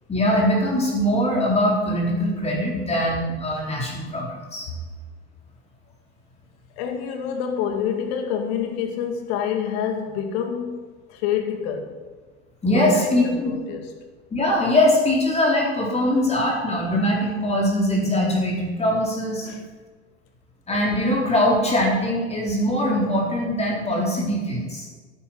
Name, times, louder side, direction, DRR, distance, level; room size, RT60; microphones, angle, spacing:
voice 1, 0.1-4.7 12.6-13.5 14.3-19.5 20.7-24.9, left 1 dB, 20° left, 4.2 m, -22 dB
voice 2, 6.8-12.0 12.6-13.9 19.4-19.6, left 8 dB, 60° left, 2.2 m, -27 dB
12.0 x 9.1 x 6.0 m
hypercardioid pair, 90°, 33 cm